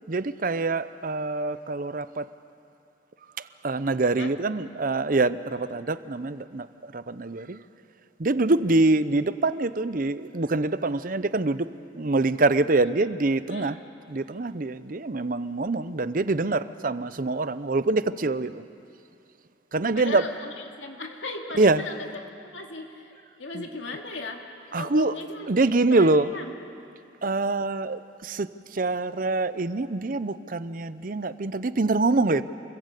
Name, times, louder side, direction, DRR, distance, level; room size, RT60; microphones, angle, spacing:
voice 1, 0.1-2.3 3.4-7.6 8.2-13.8 14.1-18.6 19.7-20.2 21.6-21.8 23.5-23.7 24.7-25.2 25.5-26.3 27.2-32.4, right 2 dB, 50° right, 14 dB, 0.7 m, -25 dB
voice 2, 13.5-13.8 19.9-23.1 23.4-24.4 24.7-26.5, left 3 dB, 85° left, 2 dB, 2.6 m, -37 dB
28.0 x 21.5 x 8.4 m, 2.6 s
head